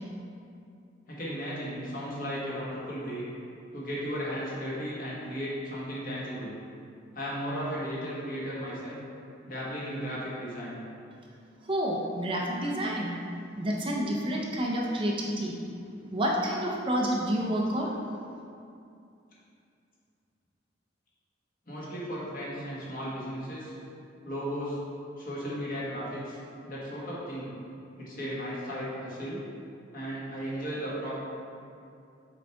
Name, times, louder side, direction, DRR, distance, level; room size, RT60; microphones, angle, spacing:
voice 1, 1.1-3.3 3.7-6.5 7.1-9.0 9.5-10.8 21.7-23.7 24.2-24.8 25.2-26.4 26.6-27.5 28.0-29.4 29.9-31.1, equal, 45° left, -7 dB, 1.5 m, -35 dB
voice 2, 11.7-13.1 13.6-15.6 16.1-18.0, equal, 25° right, -2 dB, 0.5 m, -29 dB
6.1 x 4.7 x 3.5 m, 2.5 s
head